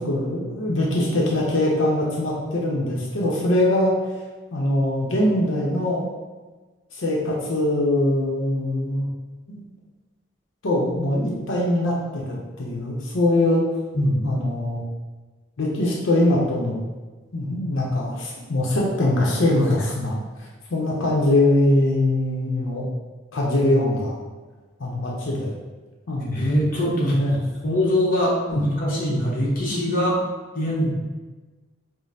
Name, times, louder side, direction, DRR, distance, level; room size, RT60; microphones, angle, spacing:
voice 1, 0.0-3.9 4.5-6.1 6.9-9.1 9.5-9.6 10.6-13.6 14.2-14.8 15.6-16.8 17.3-20.2 20.7-22.8 23.3-24.2 24.8-25.5 26.1-26.4 27.1-27.4 28.5-28.6, left 1 dB, 85° left, -3 dB, 0.6 m, -22 dB
voice 2, 26.3-27.2 27.6-30.2 30.5-30.9, equal, 45° left, -5 dB, 0.8 m, -22 dB
5.0 x 2.0 x 2.7 m, 1.3 s
head